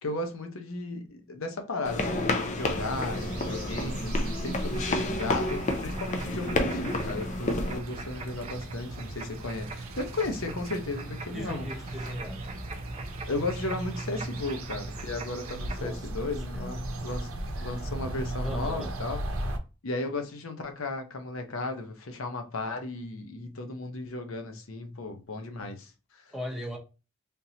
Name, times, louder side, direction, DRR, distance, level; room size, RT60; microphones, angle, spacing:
voice 1, 0.0-4.1 4.4-11.7 13.3-17.3 17.6-19.5 19.8-26.2, left 2 dB, 75° left, 0.8 m, -35 dB
sound 1, 1.8-7.8, left 2 dB, 35° left, 0.5 m, -30 dB
sound 2, 2.6-19.6, right 1 dB, 75° right, 0.7 m, -37 dB
sound 3, 4.7-15.8, right 4 dB, 30° right, 0.5 m, -45 dB
voice 2, 11.3-12.4 15.6-16.8 17.6-17.8 18.4-18.9 26.3-26.8, equal, ahead, 0.8 m, -38 dB
3.6 x 2.7 x 2.8 m
head